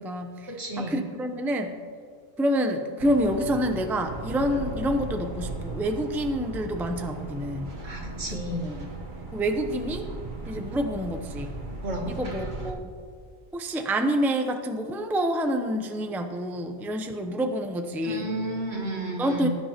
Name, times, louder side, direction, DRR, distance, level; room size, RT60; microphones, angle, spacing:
voice 1, 0.0-1.7 2.4-7.7 8.3-8.9 9.3-10.1 10.5-11.5 12.1-12.9 13.5-18.3 19.2-19.5, equal, ahead, 5 dB, 0.5 m, -28 dB
voice 2, 0.6-1.0 7.8-8.7 11.8-12.0 18.0-19.5, equal, 70° right, -2 dB, 2.5 m, -32 dB
sound 1, 3.0-12.7, right 2 dB, 45° right, 1.2 m, -37 dB
20.0 x 10.0 x 2.9 m, 2.2 s
omnidirectional pair, 1.2 m